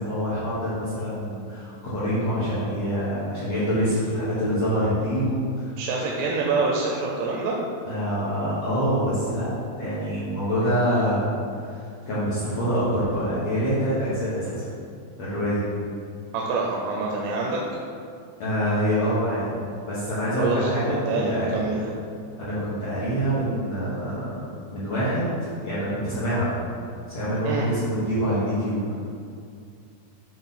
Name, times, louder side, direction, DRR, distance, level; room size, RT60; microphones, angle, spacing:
voice 1, 0.0-5.8 7.9-9.5 9.8-11.3 11.6-14.7 15.2-15.6 18.4-19.5 19.8-21.6 22.4-26.6 27.1-28.9, equal, 65° left, -11 dB, 1.6 m, -26 dB
voice 2, 5.8-7.6 16.3-17.6 20.4-20.7 21.1-21.9 27.4-27.7, right 3 dB, 85° right, -2 dB, 2.7 m, -26 dB
7.9 x 3.7 x 4.2 m, 2.3 s
omnidirectional pair, 4.6 m